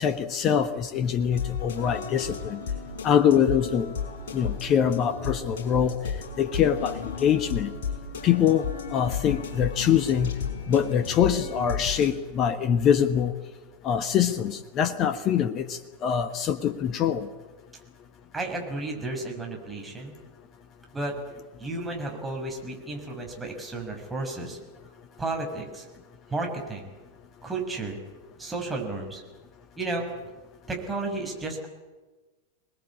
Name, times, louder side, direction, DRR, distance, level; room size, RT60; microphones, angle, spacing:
voice 1, 0.0-2.6 3.0-3.9 4.3-5.9 6.4-6.9 7.2-7.7 8.2-8.7 8.9-10.3 10.7-13.3 13.8-17.2, left 8 dB, 35° left, 12 dB, 1.3 m, -24 dB
sound 1, 1.3-12.2, left 6 dB, 55° left, 5.2 m, -34 dB
voice 2, 18.3-20.1 20.9-21.1 21.6-24.6 25.2-25.9 26.3-26.9 27.4-28.0 28.4-29.2 29.8-30.1 30.7-31.7, right 2 dB, 10° right, 1 dB, 6.4 m, -32 dB
26.5 x 20.0 x 8.6 m, 1.3 s
figure-of-eight pair, 90°, 0 cm